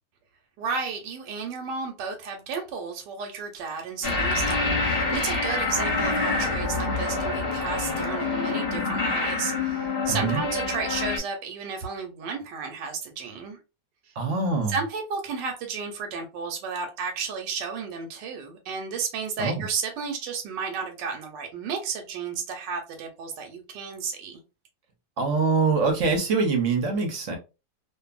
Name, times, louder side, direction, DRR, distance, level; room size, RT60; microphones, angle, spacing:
voice 1, 0.6-13.6 14.0-14.1 14.7-24.4, right 5 dB, 85° right, 1.3 m, -33 dB
sound 1, 4.0-11.2, left 3 dB, 45° left, 0.9 m, -26 dB
voice 2, 10.1-10.4 14.2-14.7 19.4-19.6 25.2-27.4, right 4 dB, 60° right, 0.9 m, -24 dB
2.6 x 2.5 x 2.3 m
omnidirectional pair, 1.9 m